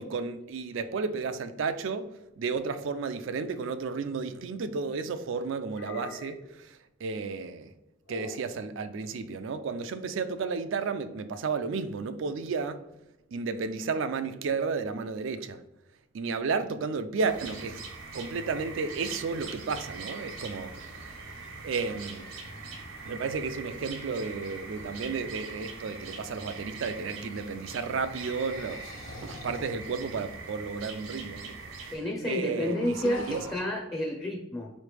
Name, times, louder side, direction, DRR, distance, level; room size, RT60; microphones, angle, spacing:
voice 1, 0.0-2.1 2.4-7.7 8.1-12.8 13.3-15.6 16.1-17.8 18.1-20.7 21.0-21.1 21.6-22.3 23.0-31.9 32.2-33.4, right 4 dB, 65° right, 0.4 m, -33 dB
sound 1, 4.2-5.0 5.7-6.6 8.1-8.6, left 2 dB, 55° left, 0.6 m, -45 dB
sound 2, 17.3-32.0, right 4 dB, 80° right, 1.1 m, -42 dB
sound 3, 26.1-27.1 28.0-30.0 30.6-30.7 30.9-31.0 31.2-31.6 32.0-32.1 32.4-33.6, left 1 dB, 80° left, 0.9 m, -46 dB
voice 2, 31.9-34.7, left 1 dB, 10° left, 0.5 m, -30 dB
4.5 x 3.2 x 3.3 m
head